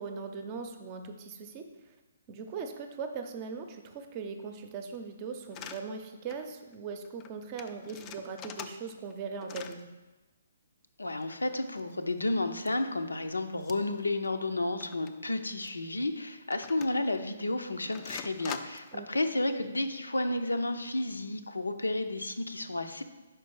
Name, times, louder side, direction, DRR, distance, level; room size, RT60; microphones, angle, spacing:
voice 1, 0.0-1.6 2.3-9.9 18.9-19.1, right 5 dB, 30° right, 6 dB, 0.6 m, -40 dB
sound 1, 5.5-5.8 6.3-6.5 6.7-6.8 7.0-7.3 7.6-9.1 9.4-9.8 11.1-12.2 12.6-12.7 13.6-14.0 14.2-14.3 14.8-15.1 15.6-15.7 16.5-17.2 17.9-18.9, left 8 dB, 25° left, 0.3 m, -44 dB
voice 2, 11.0-23.0, left 2 dB, 80° left, 8 dB, 0.5 m, -32 dB
5.2 x 4.5 x 4.8 m, 1.1 s
figure-of-eight pair, 130°, 0 cm